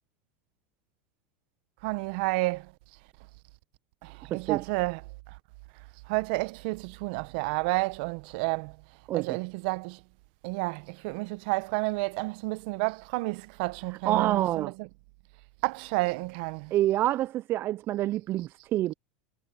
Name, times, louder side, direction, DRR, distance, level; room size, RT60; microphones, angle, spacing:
voice 1, 1.8-2.7 4.0-5.0 6.1-8.8 9.1-10.0 10.4-14.9 15.6-16.7, right 25 dB, 65° right, 1.0 m, -30 dB
voice 2, 4.3-4.6 9.1-9.4 14.1-14.7 16.7-18.9, right 14 dB, 40° right, 0.4 m, -27 dB
hypercardioid pair, 100°, 6 cm